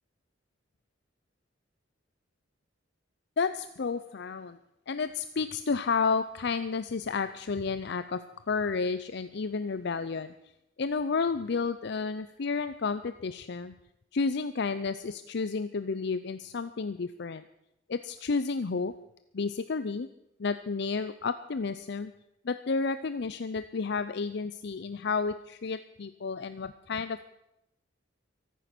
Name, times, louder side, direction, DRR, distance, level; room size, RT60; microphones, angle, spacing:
voice 1, 3.4-4.6 4.9-8.2 8.5-10.3 10.8-13.7 14.1-17.4 17.9-18.9 19.3-20.1 20.4-22.1 22.4-27.3, left 4 dB, 60° left, 12 dB, 0.5 m, -31 dB
23.5 x 9.4 x 6.0 m, 0.84 s
head